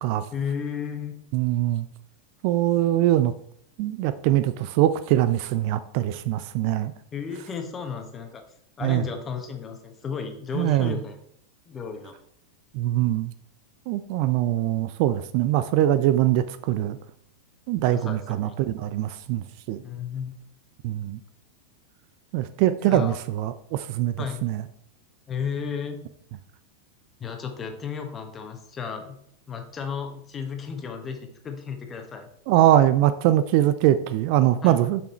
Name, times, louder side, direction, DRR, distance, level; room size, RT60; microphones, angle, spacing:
voice 1, 0.3-1.1 7.1-8.4 8.8-11.2 11.7-12.2 17.9-18.6 19.8-20.4 22.8-23.2 24.2-24.4 25.3-26.0 27.2-29.2 29.5-32.3 34.6-34.8, left 6 dB, 20° left, 5 dB, 1.3 m, -33 dB
voice 2, 1.3-1.9 2.4-3.3 3.8-6.9 8.8-9.0 10.5-11.0 12.7-13.3 13.9-17.0 17.7-19.8 20.8-21.2 22.3-24.1 24.4-24.6 32.5-35.0, right 13 dB, 45° right, 13 dB, 0.4 m, -22 dB
6.9 x 6.1 x 4.4 m, 0.69 s
figure-of-eight pair, 90°, 0 cm